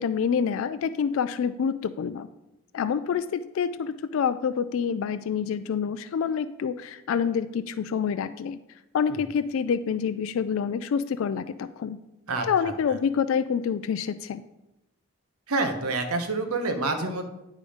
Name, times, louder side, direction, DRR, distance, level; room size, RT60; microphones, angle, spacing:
voice 1, 0.0-2.3 2.7-8.6 8.9-12.0 12.5-14.4, left 7 dB, 70° left, 11 dB, 0.3 m, -27 dB
voice 2, 12.3-12.7 15.5-17.3, right 3 dB, 90° right, 6 dB, 1.0 m, -28 dB
10.0 x 3.7 x 4.9 m, 0.94 s
head